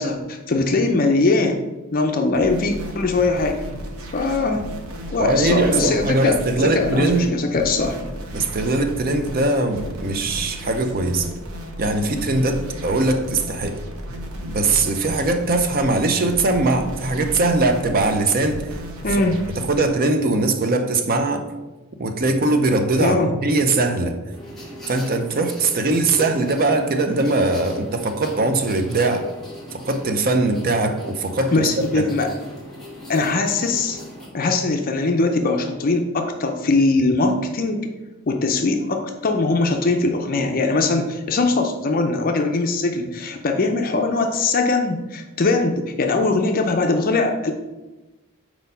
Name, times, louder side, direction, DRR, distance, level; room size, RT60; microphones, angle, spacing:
voice 1, 0.0-1.6 1.9-3.6 4.1-4.6 5.1-6.4 6.7-8.0 19.0-19.4 23.0-23.4 31.5-32.3 33.1-34.0 34.3-37.8 38.3-47.5, left 3 dB, 40° left, 4 dB, 0.5 m, -21 dB
sound 1, 2.3-19.8, equal, 85° right, 0.9 m, -34 dB
voice 2, 5.2-7.4 8.3-11.3 11.8-13.8 14.4-18.7 19.1-19.3 19.6-21.4 22.0-23.2 23.4-24.2 24.9-29.2 29.9-32.1, right 2 dB, 45° right, 6 dB, 0.6 m, -21 dB
sound 2, 24.3-34.3, left 1 dB, ahead, 1.7 m, -39 dB
4.5 x 4.2 x 5.4 m, 1.1 s
head